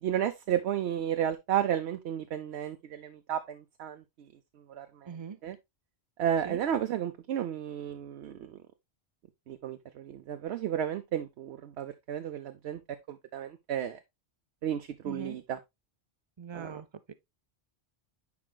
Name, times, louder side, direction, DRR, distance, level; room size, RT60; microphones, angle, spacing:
voice 1, 0.0-4.0 4.7-4.9 5.4-5.6 6.2-8.4 9.5-12.8 13.1-14.0 14.6-15.6 16.5-16.7, right 10 dB, 75° right, 0.9 m, -32 dB
voice 2, 5.1-5.4 6.4-6.6 15.0-15.4 16.4-17.1, right 6 dB, 40° right, 0.4 m, -41 dB
9.6 x 4.9 x 2.2 m
omnidirectional pair, 1.1 m